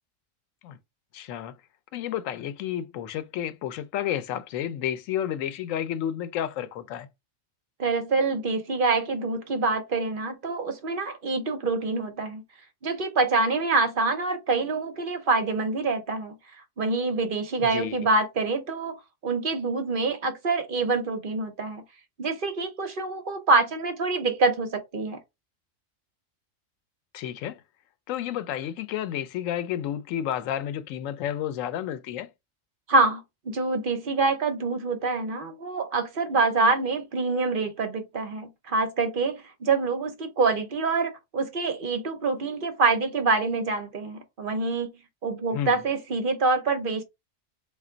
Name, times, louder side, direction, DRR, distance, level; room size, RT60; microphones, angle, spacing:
voice 1, 1.1-1.6 1.9-7.1 17.6-18.0 27.1-27.6 28.1-32.3 45.5-45.8, left 10 dB, 85° left, 1.0 m, -31 dB
voice 2, 7.8-12.4 12.8-16.3 16.8-19.0 19.2-21.8 22.2-25.2 32.9-47.0, right 3 dB, 50° right, 0.8 m, -26 dB
3.3 x 2.4 x 3.8 m
omnidirectional pair, 1.3 m